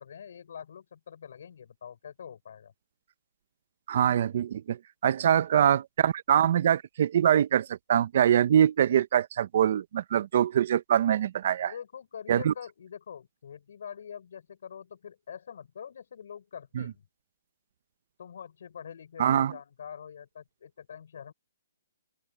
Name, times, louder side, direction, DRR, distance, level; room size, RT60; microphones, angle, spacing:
voice 1, 0.0-2.7 5.2-5.4 11.4-17.1 18.2-21.3, left 8 dB, 60° left, 5.4 m, -45 dB
voice 2, 3.9-4.8 5.0-11.7 12.3-12.5 16.8-16.9 19.2-19.5, right 10 dB, 45° right, 0.6 m, -24 dB
open air
hypercardioid pair, 170°, 0 cm